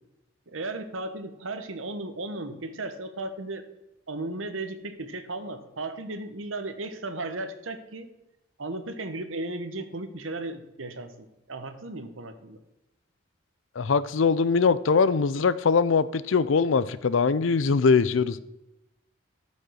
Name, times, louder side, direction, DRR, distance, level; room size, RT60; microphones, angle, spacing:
voice 1, 0.5-3.7 4.1-8.1 8.6-12.6, right 2 dB, 85° right, 1.1 m, -35 dB
voice 2, 13.8-18.4, left 5 dB, 75° left, 0.5 m, -22 dB
12.0 x 5.4 x 6.3 m
head